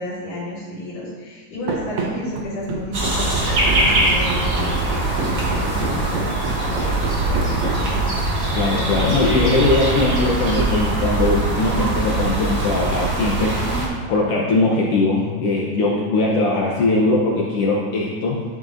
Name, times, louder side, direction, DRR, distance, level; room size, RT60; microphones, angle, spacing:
voice 1, 0.0-6.9 7.2-8.0, left 1 dB, 50° left, -13 dB, 3.5 m, -31 dB
Run, 1.7-8.3, right 3 dB, 75° right, 2.1 m, -29 dB
sound 1, 2.9-13.9, right 2 dB, 50° right, 1.2 m, -22 dB
voice 2, 8.5-18.4, left 2 dB, 80° left, -3 dB, 1.3 m, -20 dB
12.0 x 5.3 x 2.6 m, 1.4 s
omnidirectional pair, 3.7 m